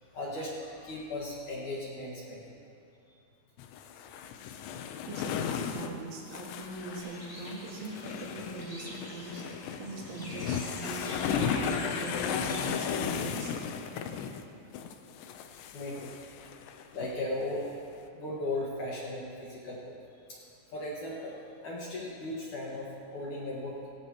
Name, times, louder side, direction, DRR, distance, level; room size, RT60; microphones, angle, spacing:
voice 1, 0.1-2.5 5.5-5.6 15.7-16.2 16.9-17.7 18.1-19.9 20.3-20.4 20.7-23.8, left 1 dB, 55° left, -5 dB, 2.4 m, -37 dB
sound 1, 3.6-14.4 14.7-17.1 17.4-17.5, left 7 dB, 80° left, 2.9 m, -35 dB
voice 2, 5.1-13.6, right 2 dB, 85° right, -2 dB, 4.3 m, -41 dB
Bird, 7.0-12.7, left 1 dB, 20° left, 0.8 m, -45 dB
19.5 x 17.0 x 3.0 m, 2.5 s
omnidirectional pair, 5.3 m